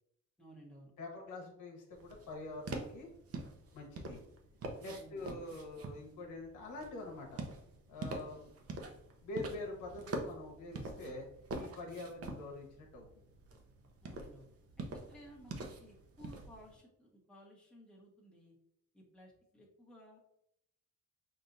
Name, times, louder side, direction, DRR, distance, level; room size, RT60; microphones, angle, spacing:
voice 1, 0.4-0.9 4.9-5.4 14.0-14.5 14.8-18.6 18.9-20.2, equal, 5° left, -4 dB, 1.3 m, -57 dB
voice 2, 1.0-3.1 3.7-4.2 4.8-7.4 7.9-8.5 9.2-11.3 11.6-13.2, left 2 dB, 80° left, 0 dB, 1.2 m, -45 dB
sound 1, 1.9-16.7, right 2 dB, 50° right, 0.8 m, -46 dB
5.3 x 2.7 x 2.6 m, 0.77 s
cardioid pair, 90°, 30 cm